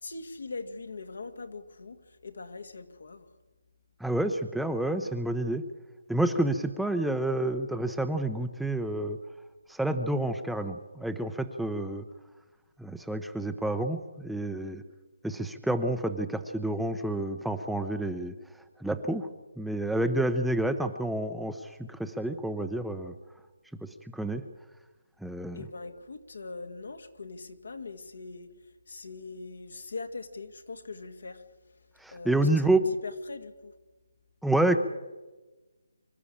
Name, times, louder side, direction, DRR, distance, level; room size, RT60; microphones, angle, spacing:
voice 1, 0.0-3.3 25.5-28.5 28.9-31.4 32.1-33.7, left 3 dB, 75° left, 7 dB, 2.1 m, -41 dB
voice 2, 4.0-5.6 6.1-9.2 9.7-12.0 12.8-14.8 15.2-18.3 18.8-19.3 19.6-23.1 23.8-24.4 25.2-25.6 32.0-32.8 34.4-34.8, right 1 dB, ahead, 7 dB, 0.8 m, -29 dB
25.0 x 12.5 x 8.7 m, 1.2 s
figure-of-eight pair, 155°, 0 cm